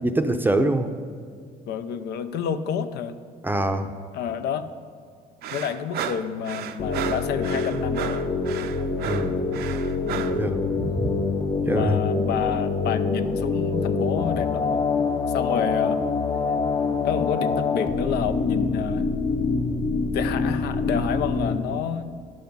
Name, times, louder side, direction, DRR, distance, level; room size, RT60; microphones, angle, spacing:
voice 1, 0.0-0.9 3.4-3.9 9.0-9.5 10.3-11.2 11.6-12.0, right 1 dB, 10° right, 7 dB, 0.6 m, -24 dB
voice 2, 1.7-3.2 4.1-4.7 5.5-8.2 10.0-10.4 11.7-14.9 15.3-16.0 17.0-19.0 20.1-22.1, left 8 dB, 75° left, 10 dB, 0.6 m, -29 dB
sound 1, 5.4-10.4, right 9 dB, 70° right, 0.5 m, -34 dB
sound 2, 6.8-21.6, left 4 dB, 30° left, 0.7 m, -25 dB
10.5 x 6.9 x 5.3 m, 2.2 s
cardioid pair, 110°, 17 cm